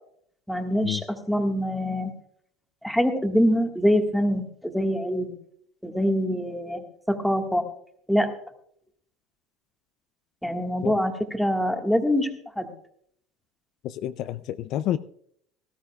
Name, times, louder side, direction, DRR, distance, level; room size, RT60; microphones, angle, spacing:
voice 1, 0.5-2.1 2.8-5.4 5.8-7.7 8.1-8.3 10.4-12.7, equal, ahead, 4 dB, 1.6 m, -24 dB
voice 2, 13.8-15.0, left 12 dB, 55° left, 12 dB, 0.5 m, -29 dB
18.0 x 14.0 x 2.3 m, 0.65 s
cardioid pair, 130°, 0 cm